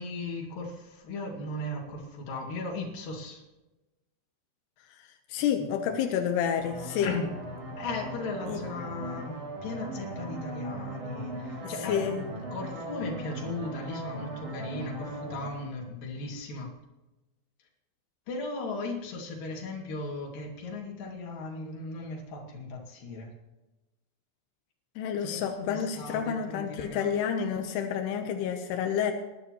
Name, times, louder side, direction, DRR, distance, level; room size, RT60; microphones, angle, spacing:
voice 1, 0.0-3.4 5.6-5.7 7.0-7.3 7.8-9.4 9.6-16.7 18.3-23.3 25.2-27.1, left 2 dB, 50° left, 0 dB, 3.5 m, -37 dB
voice 2, 4.9-7.2 8.5-8.6 11.6-12.3 25.0-29.1, left 8 dB, 85° left, 5 dB, 2.4 m, -29 dB
sound 1, 6.6-15.5, right 1 dB, 30° right, 4.1 m, -39 dB
20.0 x 12.5 x 3.1 m, 1.1 s
omnidirectional pair, 5.8 m